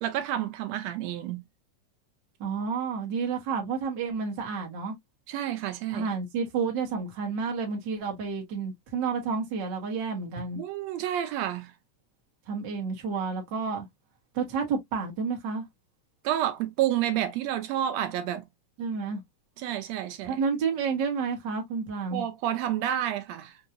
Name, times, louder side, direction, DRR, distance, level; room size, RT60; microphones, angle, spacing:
voice 1, 0.0-1.4 5.3-6.1 10.6-11.7 16.2-18.4 19.6-20.4 22.1-23.6, right 11 dB, 75° right, 1.7 m, -29 dB
voice 2, 2.4-4.9 5.9-10.6 12.5-13.9 14.3-15.6 18.8-19.2 20.2-22.2, right 5 dB, 60° right, 1.2 m, -30 dB
5.3 x 2.8 x 2.3 m
omnidirectional pair, 3.4 m